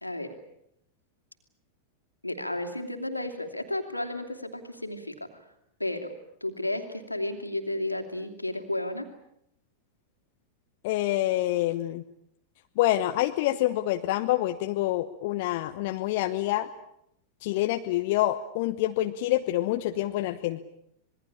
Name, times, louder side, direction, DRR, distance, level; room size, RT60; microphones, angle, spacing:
voice 1, 0.0-0.3 2.2-5.3 5.8-6.1 6.4-9.1, left 1 dB, 85° left, 5 dB, 3.0 m, -32 dB
voice 2, 10.8-12.0 12.8-16.7 17.4-20.6, left 15 dB, 50° left, 7 dB, 1.1 m, -27 dB
26.5 x 21.0 x 8.7 m, 0.75 s
figure-of-eight pair, 90°, 0 cm